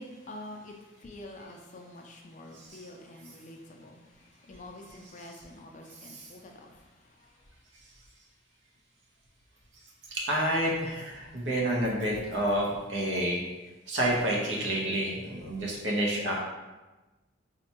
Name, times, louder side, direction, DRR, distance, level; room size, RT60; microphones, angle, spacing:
voice 1, 0.0-7.4 11.5-11.6, left 1 dB, 40° left, 1 dB, 0.4 m, -47 dB
voice 2, 10.1-13.4 13.9-16.4, right 1 dB, 65° right, -3 dB, 0.8 m, -29 dB
4.1 x 2.2 x 2.9 m, 1.1 s
head